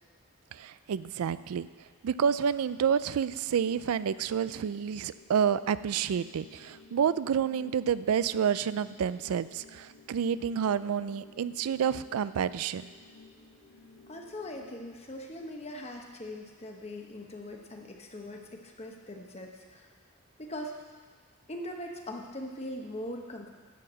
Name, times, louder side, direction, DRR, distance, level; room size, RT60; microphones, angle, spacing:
voice 1, 0.5-1.7 2.0-12.9, right 7 dB, 85° right, 15 dB, 0.4 m, -29 dB
sound 1, 4.8-14.8, left 3 dB, 55° left, 1.3 m, -56 dB
voice 2, 14.1-19.9 20.4-20.7 21.5-23.5, left 1 dB, 30° left, 2 dB, 1.0 m, -41 dB
11.5 x 4.7 x 7.3 m, 1.5 s
head